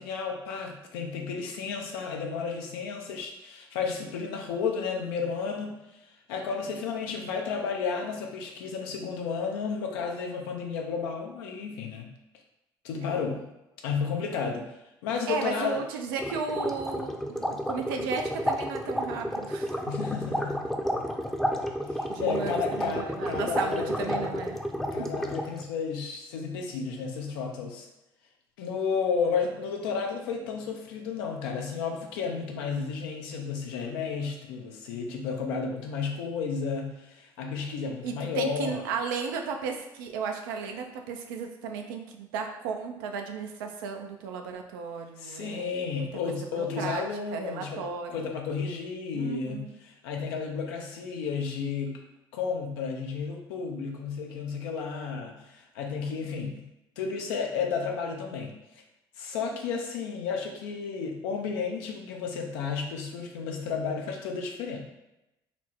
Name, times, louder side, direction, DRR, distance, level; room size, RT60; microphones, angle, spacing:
voice 1, 0.0-5.8 6.3-12.1 12.8-13.5 13.8-14.6 15.0-15.8 19.9-20.7 21.9-24.3 24.9-27.9 28.6-38.8 45.2-47.8 48.1-52.0 52.3-56.6 57.0-58.5 59.2-64.8, left 5 dB, 80° left, 2 dB, 0.6 m, -32 dB
voice 2, 15.3-19.8 22.1-24.6 25.0-25.1 38.0-46.1 46.6-47.1 47.3-48.1 49.1-49.7, right 5 dB, 85° right, 4 dB, 0.5 m, -35 dB
sound 1, 16.2-25.6, equal, 5° left, 0.6 m, -31 dB
4.2 x 2.1 x 4.4 m, 0.93 s
hypercardioid pair, 55°, 11 cm